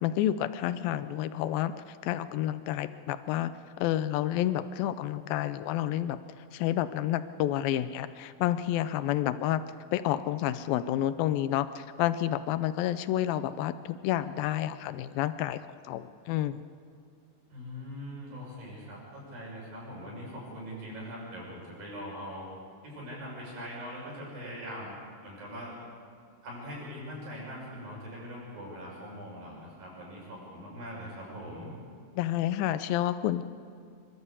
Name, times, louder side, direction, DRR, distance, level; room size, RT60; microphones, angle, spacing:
voice 1, 0.0-6.2 6.5-9.6 9.9-15.6 15.9-16.6 32.2-33.4, left 12 dB, 90° left, 12 dB, 2.5 m, -29 dB
voice 2, 17.5-22.5 22.8-25.8 26.4-31.7, equal, 75° right, -4 dB, 8.3 m, -42 dB
26.5 x 12.5 x 8.3 m, 2.3 s
omnidirectional pair, 4.1 m